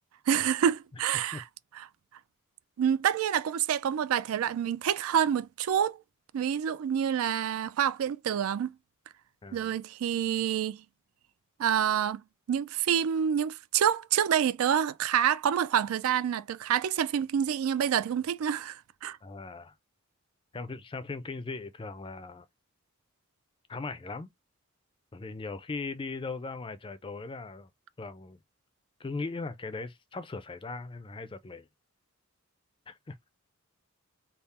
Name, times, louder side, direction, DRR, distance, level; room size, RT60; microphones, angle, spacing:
voice 1, 0.3-1.4 1.7-1.9 2.8-6.0 6.3-8.7 9.5-10.8 11.6-12.2 12.5-19.2, right 9 dB, 75° right, 0.3 m, -27 dB
voice 2, 9.4-9.7 19.2-19.7 20.5-22.5 23.7-24.3 25.1-27.7 28.0-28.4 29.0-31.7 32.9-33.2, left 3 dB, 25° left, 0.4 m, -39 dB
3.5 x 2.0 x 4.2 m
head